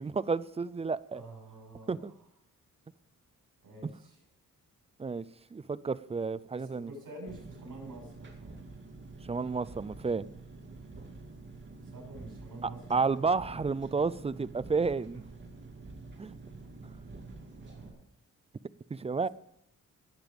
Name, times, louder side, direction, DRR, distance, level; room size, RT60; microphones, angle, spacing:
voice 1, 0.0-1.2 1.9-2.1 3.8-3.9 5.0-5.2 5.5-6.9 9.3-10.2 12.9-15.3 16.2-16.4 18.9-19.3, right 4 dB, 20° right, 16 dB, 0.4 m, -31 dB
voice 2, 1.1-2.2 3.6-4.2 6.5-8.5 11.8-12.9 13.1-13.3 17.6-18.0, right 2 dB, 75° right, 1 dB, 6.6 m, -48 dB
Engine, 7.3-17.9, right 3 dB, 35° right, 2.4 m, -48 dB
19.5 x 8.0 x 5.2 m, 0.78 s
wide cardioid pair, 130°, 33 cm